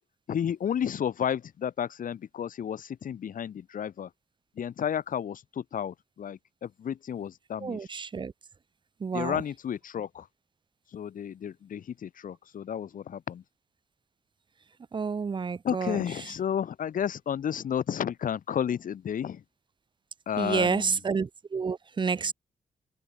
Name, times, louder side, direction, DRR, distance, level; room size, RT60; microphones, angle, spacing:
voice 1, 0.3-4.1 4.6-7.9 9.1-10.3 10.9-13.4 15.6-19.4 20.3-21.0, left 8 dB, 70° left, 3.6 m, -32 dB
voice 2, 7.6-8.3 9.0-9.4 14.9-16.3 20.4-22.3, right 5 dB, 35° right, 1.0 m, -30 dB
wide cardioid pair, 135°, 14 cm